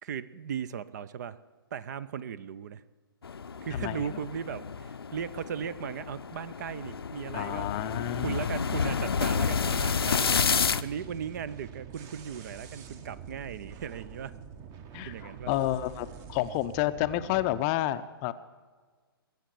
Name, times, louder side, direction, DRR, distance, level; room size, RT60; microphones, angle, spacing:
voice 1, 0.0-1.4 1.7-2.8 3.6-7.9 8.2-10.4 10.8-14.4 15.0-15.5, right 8 dB, 45° right, 18 dB, 0.6 m, -37 dB
sound 1, 3.2-10.8, left 6 dB, 70° left, 0.6 m, -30 dB
voice 2, 3.7-4.2 7.3-8.4 14.9-18.3, left 14 dB, 25° left, 12 dB, 0.5 m, -30 dB
sound 2, 10.0-17.6, right 7 dB, 25° right, 1.0 m, -46 dB
21.0 x 8.0 x 8.4 m, 1.5 s
figure-of-eight pair, 125°, 13 cm